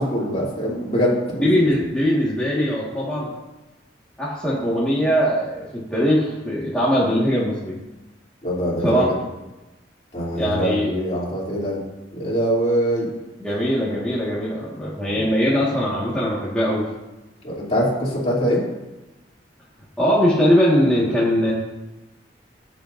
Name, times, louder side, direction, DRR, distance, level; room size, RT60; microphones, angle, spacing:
voice 1, 0.0-1.5 8.4-9.0 10.1-11.8 12.1-13.1 17.4-18.6, equal, 35° left, -5 dB, 2.9 m, -23 dB
voice 2, 1.4-3.3 4.2-7.8 8.8-9.1 10.3-10.9 13.4-16.9 20.0-21.5, equal, 5° left, -8 dB, 1.6 m, -21 dB
17.0 x 7.5 x 2.6 m, 1.1 s
head